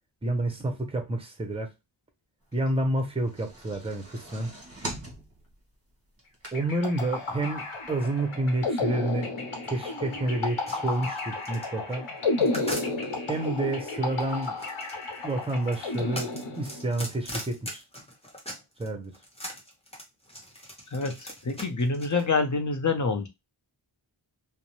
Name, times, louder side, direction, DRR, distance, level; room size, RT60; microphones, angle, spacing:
voice 1, 0.2-1.7 2.5-4.5 6.5-9.3 9.6-12.1 13.3-14.6 15.2-17.8 18.8-19.1, right 1 dB, 10° right, 0.7 m, -29 dB
sound 1, 3.0-7.0 7.4-7.5 7.8-7.9, right 1 dB, 30° right, 1.0 m, -41 dB
sound 2, 6.5-17.0, left 3 dB, 85° left, 0.8 m, -32 dB
sound 3, 10.7-13.4 14.2-18.9 19.1-22.2, equal, 10° left, 0.9 m, -40 dB
voice 2, 20.9-23.3, left 4 dB, 40° left, 0.6 m, -27 dB
2.5 x 2.0 x 2.9 m
wide cardioid pair, 60°, 48 cm